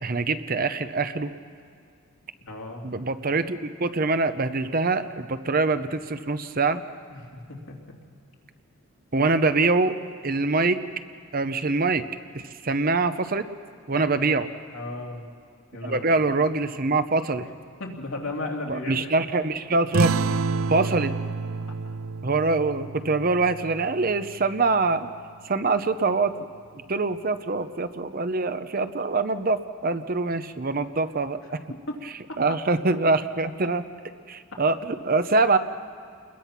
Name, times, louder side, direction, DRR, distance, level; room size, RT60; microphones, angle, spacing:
voice 1, 0.0-1.3 2.8-6.8 9.1-10.0 10.2-10.8 11.3-12.0 12.3-13.5 13.9-14.5 15.8-17.5 18.7-20.1 20.7-21.1 22.2-25.1 25.4-26.3 26.9-31.6 32.4-33.8 34.3-35.6, right 3 dB, 45° right, 11 dB, 0.8 m, -24 dB
voice 2, 2.5-2.8 7.1-7.2 7.5-7.8 14.7-15.3 15.7-16.2 17.8-19.1 31.9-32.0 32.3-32.4 34.5-34.6, left 2 dB, 80° left, -1 dB, 2.9 m, -34 dB
sound 1, 19.9-25.0, right 4 dB, 75° right, 0.6 m, -29 dB
29.0 x 21.5 x 6.0 m, 2.1 s
head